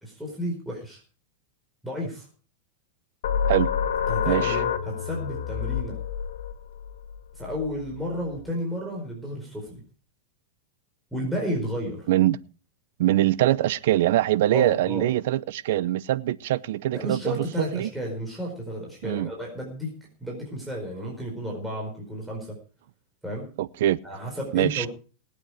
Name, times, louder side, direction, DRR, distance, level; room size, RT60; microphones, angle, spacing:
voice 1, 0.0-1.0 1.8-2.3 4.1-6.0 7.3-9.8 11.1-12.0 14.5-15.0 16.9-19.9 20.2-22.6 23.2-23.5 24.0-24.9, equal, ahead, 4.7 m, -32 dB
sound 1, 3.2-8.5, left 8 dB, 85° left, 1.5 m, -29 dB
voice 2, 4.3-4.6 12.1-12.4 13.0-17.5 17.7-17.9 19.0-19.3 23.6-24.0 24.5-24.9, right 14 dB, 70° right, 0.7 m, -23 dB
20.0 x 8.7 x 4.9 m
supercardioid pair, 135°, 0 cm